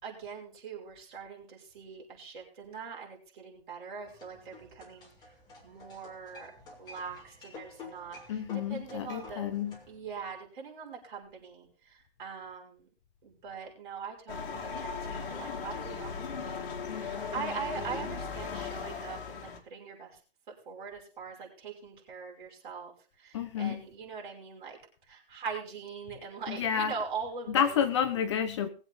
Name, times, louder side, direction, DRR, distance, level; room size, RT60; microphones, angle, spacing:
voice 1, 0.0-5.1 5.6-6.5 6.8-8.2 8.5-9.5 9.9-12.9 13.2-16.6 16.9-20.2 20.5-22.9 23.2-24.8 25.1-27.8, right 5 dB, 50° right, 5.9 m, -42 dB
sound 1, 4.0-10.0, left 3 dB, 15° left, 2.5 m, -50 dB
voice 2, 8.3-9.8 23.3-23.9 26.5-26.9 27.5-28.7, left 8 dB, 30° left, 0.8 m, -30 dB
sound 2, 14.3-19.6, left 5 dB, 60° left, 2.6 m, -37 dB
20.5 x 7.9 x 3.9 m
hypercardioid pair, 165°, 31 cm